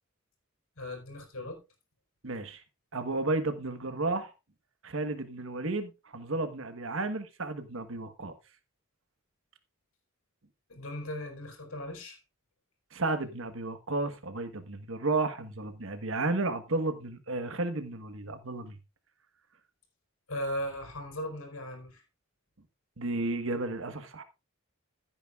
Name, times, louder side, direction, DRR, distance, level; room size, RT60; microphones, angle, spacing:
voice 1, 0.8-1.6 10.7-12.2 20.3-22.0, left 1 dB, 90° left, 4.7 m, -37 dB
voice 2, 2.2-2.6 2.9-4.3 4.8-8.3 12.9-18.8 23.0-24.2, right 2 dB, 70° right, 1.3 m, -33 dB
15.0 x 9.0 x 2.4 m
head